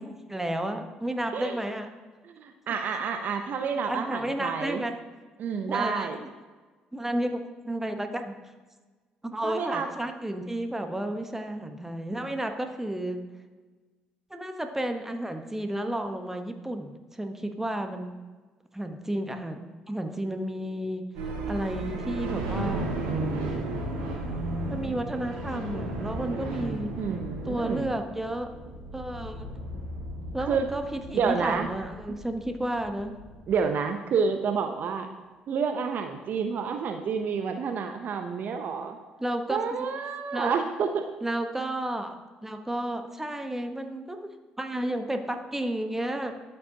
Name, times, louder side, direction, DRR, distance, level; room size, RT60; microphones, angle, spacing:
voice 1, 0.0-1.9 3.9-5.0 5.7-6.3 6.9-7.4 7.7-8.4 9.2-13.2 14.3-18.2 18.7-19.6 19.9-21.1 21.5-22.9 24.7-27.0 27.4-28.5 28.9-29.5 30.3-33.2 39.2-39.9 40.3-40.5 41.2-42.2 42.4-46.3, right 1 dB, 10° right, 6 dB, 1.0 m, -32 dB
voice 2, 2.3-4.8 5.4-6.2 9.4-9.9 27.0-27.9 30.4-30.6 31.1-31.7 33.5-35.1 35.5-39.0 39.5-41.1, right 6 dB, 55° right, 6 dB, 0.6 m, -29 dB
sound 1, 21.1-33.6, right 2 dB, 80° right, 1.8 m, -34 dB
12.5 x 5.4 x 2.8 m, 1.3 s
hypercardioid pair, 55°, 3 cm